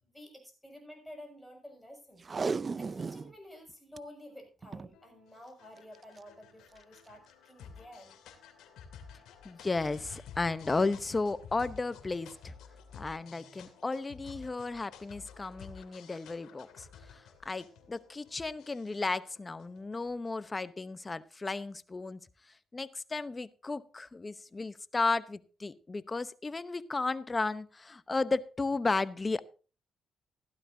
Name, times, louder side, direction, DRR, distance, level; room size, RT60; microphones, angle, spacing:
voice 1, 0.0-2.2 2.8-8.1, left 1 dB, 5° left, 3 dB, 6.3 m, -51 dB
Packing tape duct tape, 2.2-3.3 3.7-4.0 4.6-4.9 5.9-6.2 6.8-6.9, right 4 dB, 35° right, 0.5 m, -35 dB
sound 1, 4.9-20.5, left 6 dB, 80° left, 2.5 m, -52 dB
voice 2, 9.4-12.5 12.9-22.2 22.7-29.4, left 3 dB, 25° left, 15 dB, 0.8 m, -34 dB
16.0 x 12.0 x 2.7 m, 0.35 s
cardioid pair, 90°, 0 cm